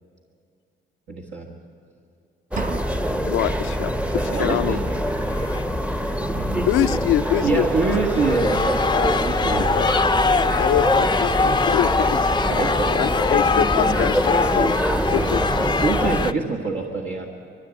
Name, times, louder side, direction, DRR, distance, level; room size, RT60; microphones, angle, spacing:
voice 1, 1.1-1.6 4.2-5.0 6.3-7.0 7.4-9.7 12.4-13.1 15.8-17.3, right 3 dB, 70° right, -1 dB, 1.7 m, -26 dB
sound 1, 2.5-16.3, equal, 5° right, 0.8 m, -24 dB
sound 2, 2.6-3.5, right 5 dB, 40° right, 0.9 m, -34 dB
voice 2, 3.3-3.9 4.3-4.8 6.7-7.7 8.9-9.2 9.6-9.9 10.6-12.3 12.9-14.2 14.5-14.7 15.1-15.5, left 13 dB, 90° left, 13 dB, 0.6 m, -24 dB
sound 3, 4.1-4.3 4.6-4.7 5.3-5.7 6.8-7.3 7.9-16.3, left 4 dB, 20° left, 0.5 m, -23 dB
22.0 x 14.5 x 8.3 m, 2.4 s
cardioid pair, 90°, 20 cm